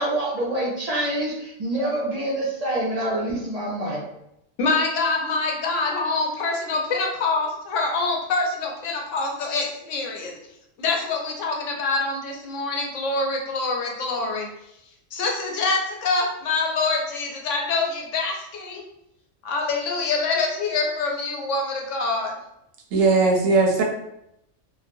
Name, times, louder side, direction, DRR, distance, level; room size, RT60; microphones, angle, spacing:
voice 1, 0.0-4.1, right 1 dB, 55° right, -5 dB, 0.4 m, -26 dB
voice 2, 4.6-10.4 10.8-14.5 15.1-18.8 19.4-22.3, left 3 dB, 75° left, 1 dB, 0.9 m, -25 dB
voice 3, 22.9-23.8, right 3 dB, 85° right, 1 dB, 1.0 m, -18 dB
2.9 x 2.1 x 2.5 m, 0.80 s
omnidirectional pair, 1.3 m